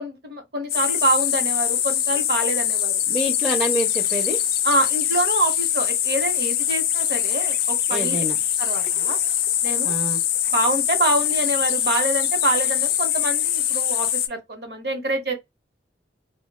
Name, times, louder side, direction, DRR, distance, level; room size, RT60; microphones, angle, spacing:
voice 1, 0.0-3.0 4.6-8.2 8.6-9.2 9.6-9.9 10.5-15.3, right 2 dB, 60° right, 1.0 m, -26 dB
sound 1, 0.7-14.3, left 10 dB, 55° left, 0.4 m, -23 dB
voice 2, 3.1-4.4 7.9-8.4 9.8-10.2, right 1 dB, 15° right, 0.5 m, -27 dB
2.3 x 2.2 x 3.4 m
head